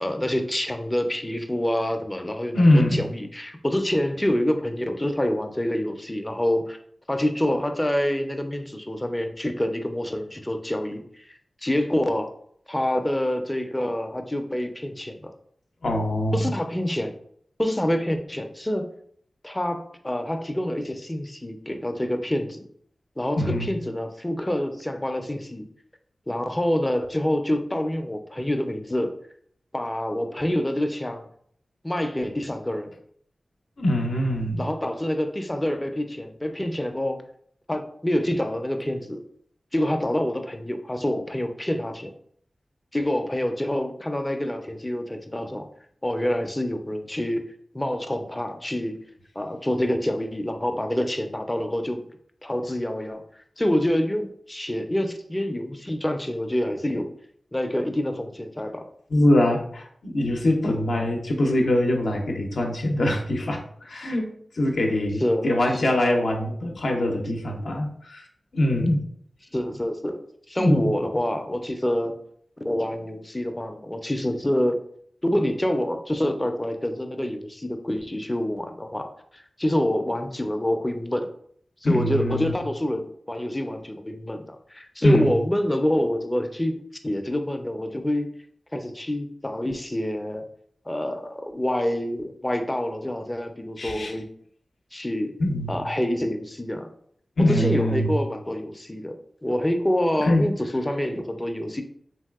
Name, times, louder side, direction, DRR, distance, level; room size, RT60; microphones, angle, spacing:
voice 1, 0.0-6.8 7.1-11.3 11.6-12.3 12.7-15.3 16.3-17.1 17.6-18.9 19.4-22.7 23.2-25.7 26.3-29.1 29.7-31.2 31.8-32.9 34.6-37.2 37.7-39.2 39.7-42.1 42.9-45.7 46.0-49.0 49.4-52.0 52.4-53.2 53.6-57.1 57.5-58.8 65.2-65.8 69.5-70.2 70.5-72.2 72.6-74.8 75.2-81.3 81.8-88.3 88.7-90.5 90.9-94.3 94.9-95.3 95.7-96.9 97.4-99.2 99.4-101.8, left 1 dB, 20° left, 6 dB, 0.4 m, -27 dB
voice 2, 2.5-3.1 15.8-16.5 23.4-23.7 33.8-34.6 59.1-64.3 64.5-68.3 68.5-69.0 70.6-70.9 81.8-82.5 85.0-85.3 93.8-94.1 95.4-95.7 97.4-98.1 100.3-100.5, left 1 dB, 80° left, 1 dB, 0.5 m, -23 dB
3.0 x 2.7 x 2.3 m, 0.63 s
cardioid pair, 45°, 0 cm